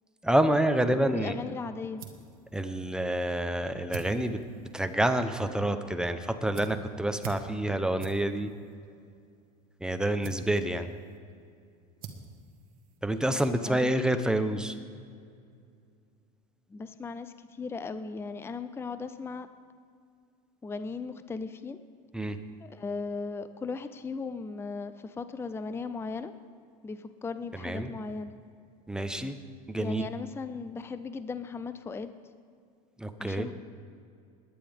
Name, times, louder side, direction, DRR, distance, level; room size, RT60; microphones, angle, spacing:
voice 1, 0.2-1.3 2.5-4.4 4.7-8.5 9.8-10.9 13.0-14.8 22.1-22.4 27.6-27.9 28.9-29.4 29.7-30.1 33.0-33.5, right 1 dB, 5° right, 8 dB, 0.8 m, -28 dB
voice 2, 1.0-2.0 13.6-14.0 16.7-19.5 20.6-21.8 22.6-26.3 26.8-28.3 29.8-32.1 33.2-33.5, left 4 dB, 15° left, 11 dB, 0.5 m, -37 dB
sound 1, 1.4-13.5, right 5 dB, 50° right, 1.6 m, -48 dB
21.0 x 10.0 x 3.6 m, 2.3 s
supercardioid pair, 110°, 19 cm